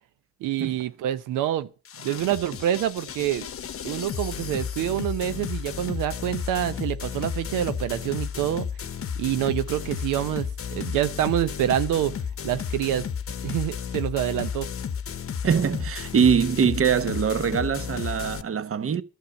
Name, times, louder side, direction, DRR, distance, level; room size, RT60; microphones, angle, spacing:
voice 1, 0.4-1.7 2.0-3.5 3.8-8.7 9.2-12.1 12.4-13.1 13.4-14.7, right 12 dB, 85° right, 0.7 m, -26 dB
sound 1, 1.8-18.4, left 7 dB, 45° left, 0.8 m, -33 dB
voice 2, 15.4-19.0, right 7 dB, 45° right, 1.0 m, -23 dB
11.5 x 6.8 x 7.9 m
supercardioid pair, 60°, 30 cm